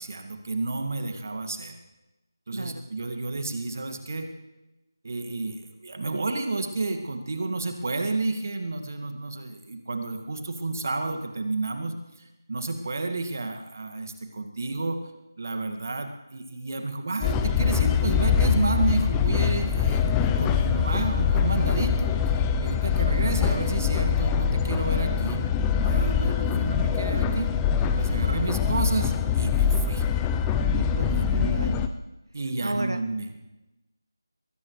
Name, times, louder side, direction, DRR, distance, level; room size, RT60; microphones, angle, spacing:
voice 1, 0.0-1.8 2.5-4.3 5.0-15.0 15.4-25.4 25.8-27.5 28.0-30.1 31.1-31.3 32.3-33.3, right 3 dB, 45° right, 6 dB, 2.0 m, -31 dB
voice 2, 2.5-2.8 30.7-31.9 32.6-33.0, right 1 dB, 80° right, 9 dB, 1.1 m, -33 dB
sound 1, 17.2-31.9, left 7 dB, 10° left, 0.5 m, -24 dB
21.0 x 19.0 x 3.2 m, 1.0 s
figure-of-eight pair, 165°, 2 cm